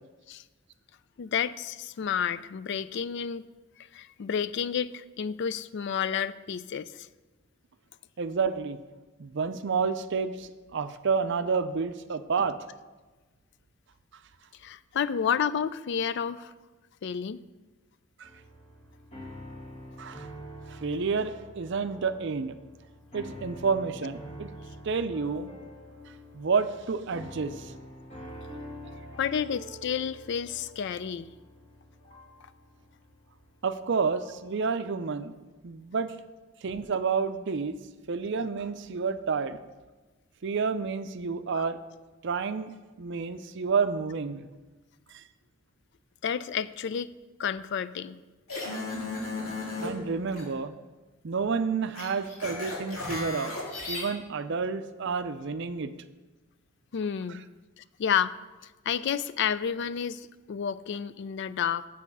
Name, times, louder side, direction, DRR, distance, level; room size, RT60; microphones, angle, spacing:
voice 1, 1.2-3.4 3.9-7.1 14.6-16.5 17.0-17.4 29.2-31.3 41.5-41.6 46.2-47.1 47.4-48.2 56.9-57.5 57.8-58.3 58.9-61.9, left 7 dB, 55° left, 16 dB, 0.3 m, -30 dB
voice 2, 8.2-8.8 9.2-12.6 18.2-18.3 20.0-20.3 20.7-22.6 23.1-24.5 24.8-25.5 26.3-27.7 33.6-35.3 35.6-36.2 36.6-37.8 38.1-39.6 40.4-41.8 42.2-42.7 43.0-44.5 45.1-45.2 49.8-50.7 51.2-53.6 53.9-55.9, right 5 dB, 60° right, 11 dB, 0.5 m, -29 dB
sound 1, 18.2-34.5, equal, 35° left, 2.2 m, -46 dB
sound 2, 48.5-49.9 50.3-50.4 51.9-54.0, left 2 dB, 85° left, 2.7 m, -35 dB
8.4 x 7.5 x 5.4 m, 1.2 s
head